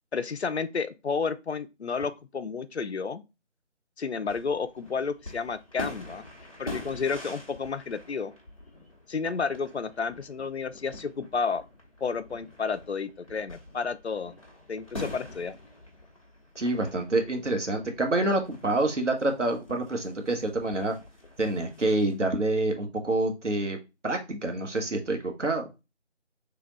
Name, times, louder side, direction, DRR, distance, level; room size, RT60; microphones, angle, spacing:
voice 1, 0.1-3.2 4.0-6.2 6.6-8.3 9.1-11.6 12.0-14.3 14.7-15.5, left 5 dB, 65° left, 0.5 m, -31 dB
sound 1, 4.3-22.2, left 2 dB, 30° left, 0.9 m, -45 dB
voice 2, 16.6-20.9 21.4-23.8 24.0-25.7, right 2 dB, 85° right, 1.1 m, -27 dB
3.4 x 2.9 x 3.8 m
figure-of-eight pair, 165°, 36 cm